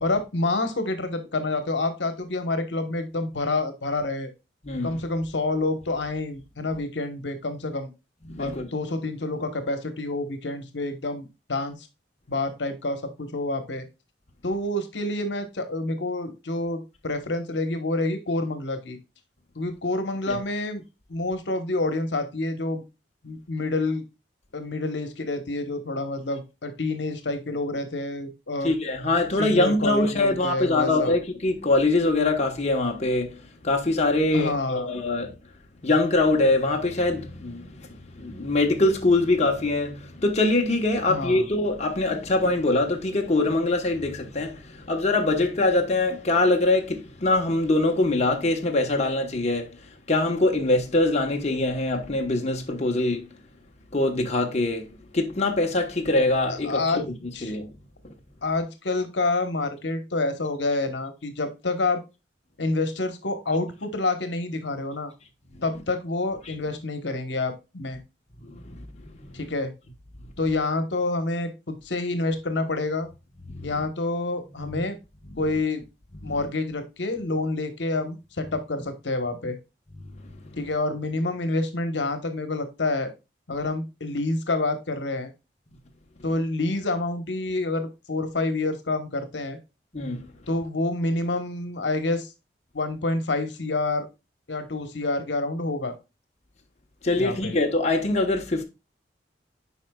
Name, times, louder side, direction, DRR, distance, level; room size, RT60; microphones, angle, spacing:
voice 1, 0.0-4.3 4.8-7.9 8.4-11.8 12.3-13.8 14.4-19.0 19.6-20.8 21.1-22.8 23.2-24.0 24.5-28.7 29.4-31.1 34.3-34.9 41.1-41.4 56.7-57.0 57.3-57.4 58.4-62.0 62.6-65.1 65.6-68.0 69.3-69.7 70.4-73.1 73.6-75.0 75.4-75.8 76.2-79.6 80.6-83.1 83.5-85.3 86.2-89.6 90.5-92.3 92.7-94.1 94.5-95.9 97.2-97.5, left 2 dB, 80° left, 1.1 m, -28 dB
voice 2, 4.6-5.0 8.2-8.7 20.3-20.4 28.6-35.3 35.8-53.3 53.9-57.0 57.4-57.7 65.5-65.6 66.4-66.5 68.4-69.3 70.2-70.3 73.4-73.8 74.6-74.8 75.3-75.4 76.1-76.5 79.9-80.6 89.9-90.2 97.0-98.6, left 2 dB, 40° left, 1.1 m, -24 dB
8.3 x 5.2 x 2.3 m
head